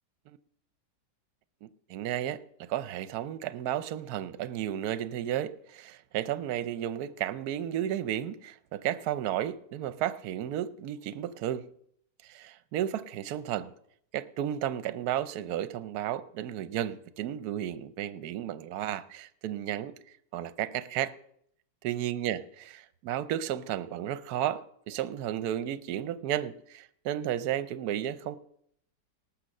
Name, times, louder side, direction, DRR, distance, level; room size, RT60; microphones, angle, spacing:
voice 1, 1.6-11.7 12.2-13.7 14.1-19.9 20.3-21.1 21.8-22.4 23.0-28.4, right 11 dB, 65° right, 14 dB, 1.1 m, -33 dB
18.5 x 6.7 x 6.5 m, 0.69 s
omnidirectional pair, 1.9 m